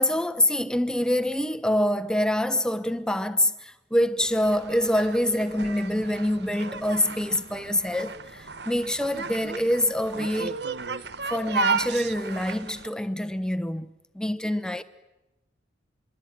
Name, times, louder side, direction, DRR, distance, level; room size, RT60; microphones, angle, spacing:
voice 1, 0.0-10.6 11.3-13.9 14.1-14.8, left 1 dB, 5° left, 1.1 m, -25 dB
sound 1, 4.2-12.9, right 5 dB, 60° right, 1.2 m, -34 dB
26.0 x 24.0 x 9.5 m
head